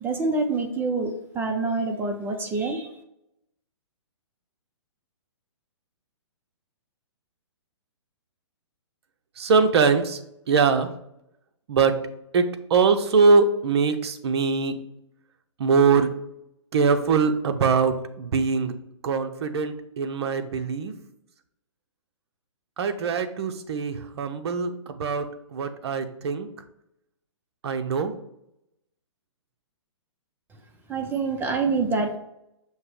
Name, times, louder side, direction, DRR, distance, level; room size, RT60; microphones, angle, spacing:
voice 1, 0.0-2.9 30.9-32.2, right 3 dB, 15° right, 5 dB, 0.5 m, -26 dB
voice 2, 9.4-10.2 10.5-10.9 11.7-12.0 12.3-14.8 15.6-16.1 16.7-18.7 19.0-20.9 22.8-25.3 25.5-26.5 27.6-28.1, right 5 dB, 60° right, 8 dB, 0.8 m, -22 dB
6.3 x 2.9 x 5.1 m, 0.81 s
hypercardioid pair, 140°, 15 cm